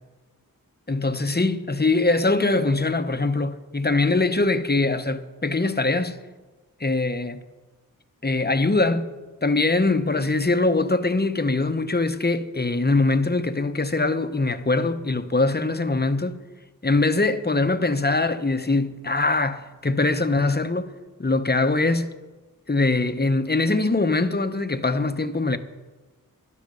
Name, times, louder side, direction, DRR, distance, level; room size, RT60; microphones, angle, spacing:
voice 1, 0.9-6.2 6.8-7.4 8.2-9.1 9.4-16.4 16.8-20.9 21.2-22.1 22.7-25.6, left 3 dB, 30° left, 0.8 m, -22 dB
11.5 x 11.5 x 6.7 m
wide cardioid pair, 45°, 36 cm